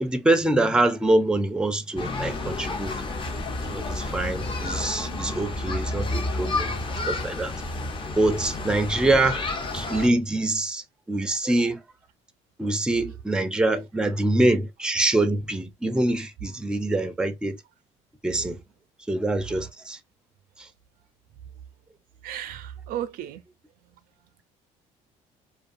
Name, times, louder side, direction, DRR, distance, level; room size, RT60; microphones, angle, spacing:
voice 1, 0.0-3.4 3.7-6.7 7.1-7.5 8.2-11.8 12.6-17.6 18.2-18.6 19.1-20.0 20.6-20.7, right 2 dB, 5° right, 0.4 m, -25 dB
sound 1, 2.0-10.1, left 2 dB, 35° left, 0.7 m, -30 dB
voice 2, 22.2-23.4 23.8-24.4, right 11 dB, 65° right, 0.4 m, -36 dB
2.3 x 2.2 x 2.5 m
supercardioid pair, 85°, 16 cm